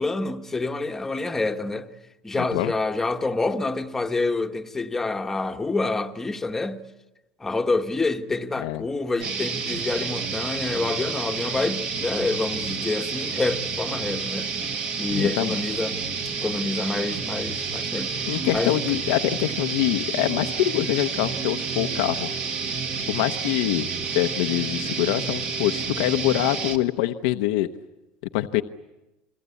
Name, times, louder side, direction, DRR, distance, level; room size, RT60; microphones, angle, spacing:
voice 1, 0.0-1.9 2.2-6.8 7.4-14.5 15.0-16.0 16.2-18.8, left 3 dB, 10° left, 1.3 m, -27 dB
voice 2, 2.4-2.7 8.6-8.9 15.1-15.6 18.3-22.3 23.1-23.9 24.1-27.7 28.3-28.6, left 15 dB, 90° left, 0.9 m, -24 dB
sound 1, 9.2-26.8, right 5 dB, 40° right, 1.8 m, -30 dB
29.5 x 22.5 x 8.5 m
cardioid pair, 150°, 3 cm